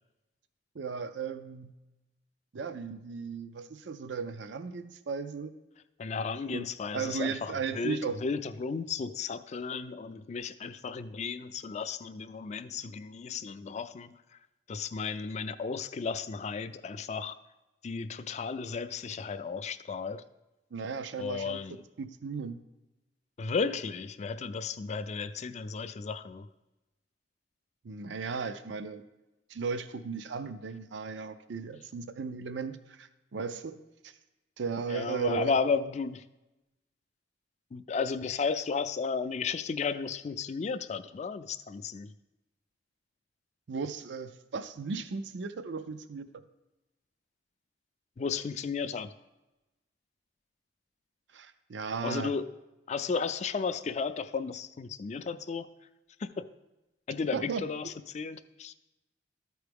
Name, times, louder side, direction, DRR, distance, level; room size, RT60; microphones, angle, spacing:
voice 1, 0.7-1.7 2.5-5.5 6.5-6.7 6.9-8.2 20.7-21.6 22.0-22.6 27.8-29.1 29.5-33.8 34.0-34.1 34.6-35.6 43.7-46.3 51.3-52.3 57.3-57.6, right 5 dB, 90° right, 11 dB, 0.5 m, -36 dB
voice 2, 6.0-14.1 14.7-17.4 17.8-20.2 21.2-21.8 23.4-26.5 34.9-36.2 37.7-42.1 48.2-49.1 52.0-52.5 52.9-55.7 56.2-56.5 57.1-58.7, left 5 dB, 40° left, 12 dB, 0.3 m, -34 dB
13.5 x 4.6 x 3.5 m, 1.0 s
head